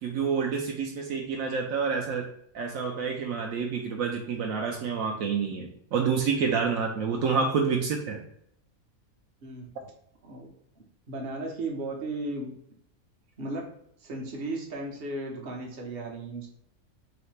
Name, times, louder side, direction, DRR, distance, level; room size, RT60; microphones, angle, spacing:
voice 1, 0.0-2.3 2.5-8.2, right 5 dB, 75° right, 1 dB, 0.9 m, -28 dB
voice 2, 11.1-12.5 13.4-13.6 14.0-16.5, right 2 dB, 50° right, 0 dB, 1.0 m, -35 dB
3.9 x 2.8 x 3.2 m, 0.71 s
omnidirectional pair, 1.5 m